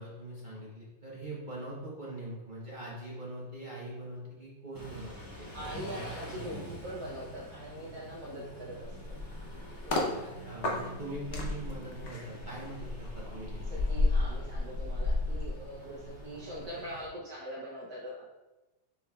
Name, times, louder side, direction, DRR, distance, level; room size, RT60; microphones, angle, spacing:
voice 1, 0.0-5.8 10.1-13.7, right 1 dB, 40° right, -6 dB, 0.7 m, -42 dB
Car / Idling / Accelerating revving vroom, 4.7-17.1, equal, 30° left, 0.3 m, -47 dB
voice 2, 5.5-9.2 9.8-10.3 13.7-18.3, equal, 65° right, -6 dB, 1.3 m, -42 dB
sound 1, 8.8-10.1 10.6-16.2 16.5-16.8, left 2 dB, 55° left, 0.8 m, -32 dB
6.8 x 3.4 x 2.3 m, 1.1 s
omnidirectional pair, 1.9 m